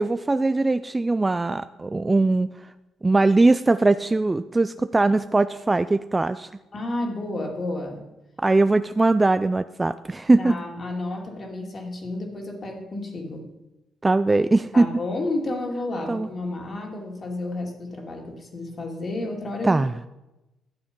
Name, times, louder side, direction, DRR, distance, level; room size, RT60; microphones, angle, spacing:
voice 1, 0.0-2.5 3.0-6.5 8.4-10.6 14.0-14.9 16.1-16.3 19.6-19.9, right 2 dB, 20° right, 11 dB, 0.3 m, -20 dB
voice 2, 6.7-8.0 10.4-13.5 14.7-19.8, left 2 dB, 40° left, 1 dB, 2.5 m, -31 dB
11.5 x 7.5 x 5.4 m, 0.98 s
cardioid pair, 90°, 0 cm